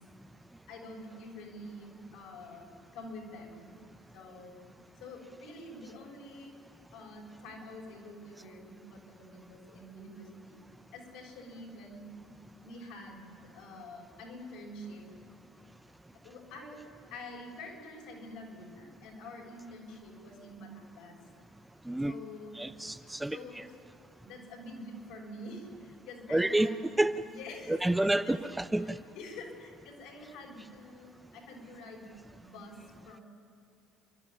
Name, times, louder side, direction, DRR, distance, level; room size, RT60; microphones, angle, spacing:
voice 1, 0.7-3.7 4.1-4.6 5.0-6.5 6.9-10.6 10.9-12.1 12.6-15.0 16.1-16.8 17.1-21.2 22.0-22.6 23.3-23.8 24.2-26.8 27.2-28.4 28.8-32.1 32.4-32.8 33.0-33.2, left 1 dB, 75° left, -1 dB, 6.5 m, -47 dB
voice 2, 22.6-23.6 26.3-26.7 27.0-27.1 27.7-29.0, right 1 dB, 10° right, 10 dB, 0.8 m, -29 dB
29.5 x 12.0 x 9.9 m, 2.5 s
hypercardioid pair, 65°, 0 cm